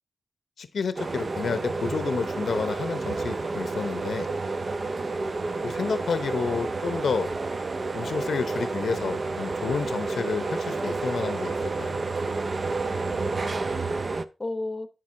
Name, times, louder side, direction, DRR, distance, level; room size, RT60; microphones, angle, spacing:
voice 1, 0.6-4.3 5.6-7.3 7.9-12.0, left 5 dB, 85° left, 0.7 m, -30 dB
sound 1, 1.0-14.2, right 3 dB, 40° right, 0.4 m, -30 dB
voice 2, 4.3-5.2 13.0-13.8 14.4-14.9, left 2 dB, 25° left, 0.7 m, -36 dB
9.0 x 7.5 x 2.6 m
wide cardioid pair, 175°, 0 cm